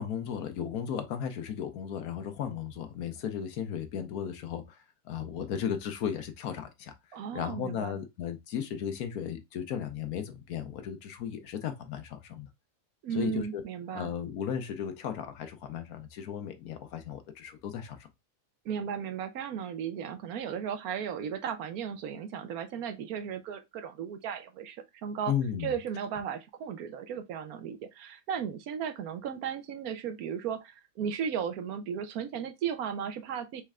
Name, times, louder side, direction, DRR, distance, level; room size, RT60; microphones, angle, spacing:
voice 1, 0.0-4.8 5.1-6.9 7.3-12.5 13.1-13.6 13.9-18.0 25.3-25.7, left 8 dB, 85° left, 1.3 m, -35 dB
voice 2, 7.1-8.0 13.0-14.1 18.6-24.8 25.0-25.3 25.6-33.6, right 8 dB, 85° right, 1.2 m, -35 dB
4.4 x 3.2 x 3.6 m
omnidirectional pair, 1.5 m